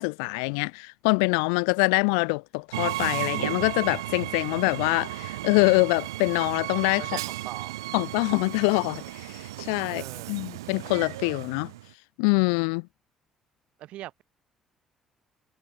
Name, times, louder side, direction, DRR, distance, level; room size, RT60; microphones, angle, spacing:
voice 1, 0.0-7.2 7.9-11.7 12.2-12.9, left 39 dB, 70° left, 0.4 m, -25 dB
Train, 2.7-11.9, right 17 dB, 75° right, 0.3 m, -34 dB
voice 2, 7.0-7.9 9.8-10.4 13.8-14.2, right 14 dB, 60° right, 1.3 m, -41 dB
figure-of-eight pair, 45°, 2 cm